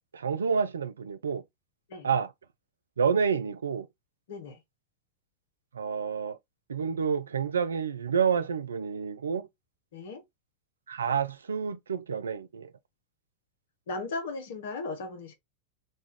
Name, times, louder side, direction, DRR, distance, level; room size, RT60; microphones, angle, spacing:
voice 1, 0.1-1.4 2.0-2.3 3.0-3.9 5.7-6.4 6.7-9.5 10.9-12.7, right 6 dB, 70° right, 0.3 m, -29 dB
voice 2, 4.3-4.6 9.9-10.2 13.9-15.3, left 3 dB, 60° left, 0.8 m, -36 dB
4.1 x 2.3 x 3.2 m
figure-of-eight pair, 90°, 0 cm